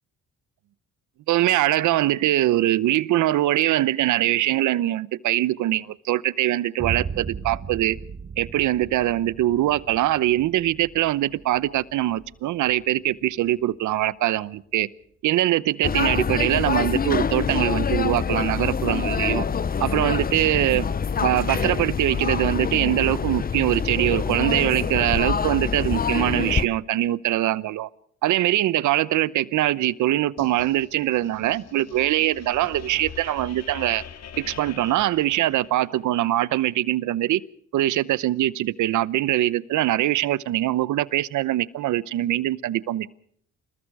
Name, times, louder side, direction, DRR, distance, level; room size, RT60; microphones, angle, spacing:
voice 1, 1.3-8.0 8.4-14.9 15.2-19.5 19.8-20.9 21.2-27.9 28.2-34.0 34.4-37.4 37.7-43.1, right 14 dB, 80° right, 0.9 m, -23 dB
Boom, 6.8-14.6, right 6 dB, 35° right, 1.5 m, -37 dB
sound 1, 15.8-26.7, left 6 dB, 30° left, 0.8 m, -25 dB
sound 2, 30.4-36.0, left 8 dB, 60° left, 2.0 m, -43 dB
28.5 x 20.0 x 4.8 m
cardioid pair, 90°, 30 cm